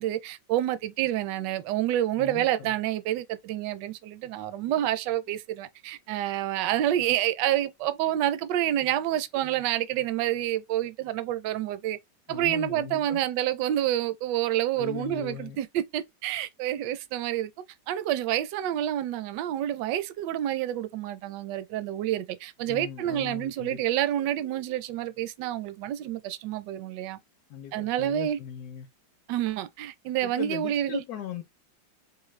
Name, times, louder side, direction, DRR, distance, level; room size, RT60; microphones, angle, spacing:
voice 1, 0.0-12.0 12.3-17.5 17.9-27.2 27.7-28.4 29.3-31.0, right 12 dB, 75° right, 1.2 m, -28 dB
voice 2, 2.2-2.7 12.3-13.2 14.8-15.6 22.7-23.8 27.5-28.9 30.2-31.4, left 10 dB, 70° left, 1.0 m, -39 dB
4.9 x 2.2 x 3.2 m
omnidirectional pair, 2.0 m